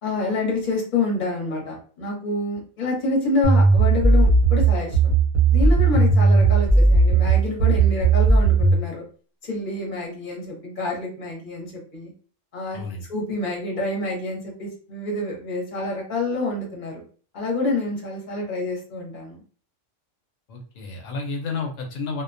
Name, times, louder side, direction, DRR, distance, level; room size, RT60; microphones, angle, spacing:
voice 1, 0.0-5.1 5.5-9.0 9.4-12.1 12.5-12.8 13.1-17.0 17.3-19.4, left 2 dB, 40° left, -1 dB, 1.0 m, -27 dB
sound 1, 3.4-8.8, right 3 dB, 30° right, 0.7 m, -17 dB
voice 2, 12.7-13.0 20.5-22.2, left 4 dB, 85° left, 1 dB, 1.0 m, -31 dB
2.4 x 2.1 x 2.5 m, 0.40 s
omnidirectional pair, 1.3 m